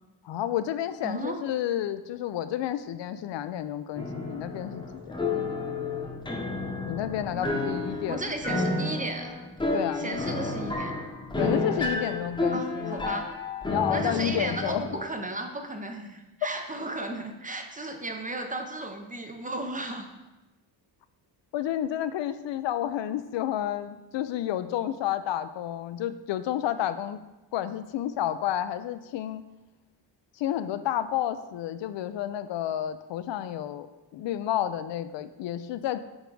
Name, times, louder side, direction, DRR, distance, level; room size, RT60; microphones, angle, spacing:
voice 1, 0.2-5.1 6.8-8.3 9.7-10.3 11.4-13.1 13.7-14.9 21.5-27.2 27.5-29.4 30.4-36.0, left 11 dB, 75° left, 12 dB, 0.5 m, -30 dB
voice 2, 1.0-1.4 7.3-7.8 8.1-9.4 10.0-10.9 12.5-13.3 13.9-20.1, right 2 dB, 20° right, 4 dB, 0.5 m, -35 dB
sound 1, 4.0-15.0, left 2 dB, 10° left, 0.8 m, -31 dB
8.9 x 3.5 x 3.9 m, 1.1 s
wide cardioid pair, 145°, 44 cm